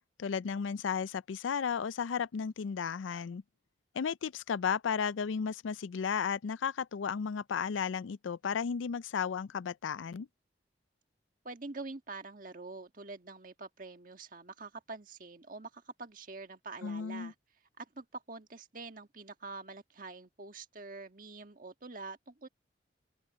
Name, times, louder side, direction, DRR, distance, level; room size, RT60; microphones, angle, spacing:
voice 1, 0.2-3.4 3.9-10.3 16.8-17.3, left 6 dB, 90° left, 0.4 m, -34 dB
voice 2, 11.4-17.3 17.8-22.5, right 3 dB, 45° right, 1.5 m, -46 dB
open air
head